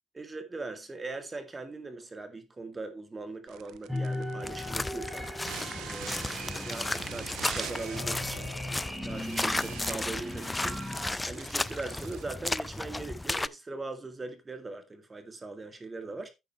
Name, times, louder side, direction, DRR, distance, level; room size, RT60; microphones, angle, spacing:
voice 1, 0.1-5.3 5.8-10.8 11.3-16.3, right 3 dB, 20° right, 2.1 m, -40 dB
sound 1, 3.5-13.0, right 12 dB, 80° right, 1.1 m, -45 dB
sound 2, 3.9-11.2, left 1 dB, 5° right, 4.3 m, -38 dB
sound 3, 4.4-13.5, left 2 dB, 10° left, 0.4 m, -34 dB
9.3 x 9.3 x 3.1 m
cardioid pair, 110°, 0 cm